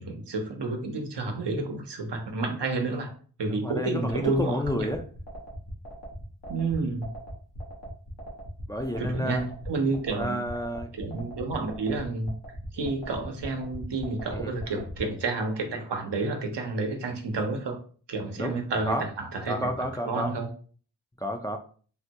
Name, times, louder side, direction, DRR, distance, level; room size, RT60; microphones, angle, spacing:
voice 1, 0.0-3.1 3.4-4.9 6.5-7.1 9.0-10.4 10.9-12.3 12.7-17.8 18.1-19.7 20.0-20.5, right 3 dB, 75° right, 3 dB, 0.8 m, -30 dB
voice 2, 3.4-5.0 8.7-9.4 10.2-10.9 14.3-14.6 18.4-18.5 18.9-19.0 19.5-20.3 21.2-21.6, equal, 10° left, 4 dB, 0.4 m, -30 dB
sound 1, 4.1-15.0, equal, 90° left, 1.2 m, -39 dB
3.5 x 2.2 x 2.8 m, 0.42 s
cardioid pair, 40°, 42 cm